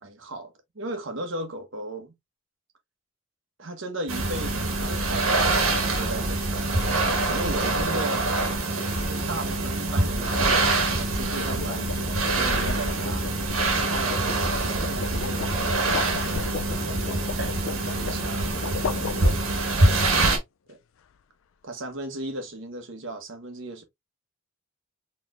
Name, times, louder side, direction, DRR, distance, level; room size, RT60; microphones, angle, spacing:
voice 1, 0.0-2.1 3.6-6.7 7.3-11.9 12.2-13.3 13.6-15.9 16.6-17.3 17.9-19.8 20.7-20.8 21.6-23.8, right 1 dB, 65° right, 1.0 m, -37 dB
sound 1, 4.1-20.4, right 2 dB, 85° right, 1.3 m, -25 dB
sound 2, 11.0-19.8, left 5 dB, 75° left, 0.4 m, -36 dB
4.1 x 3.1 x 2.4 m
head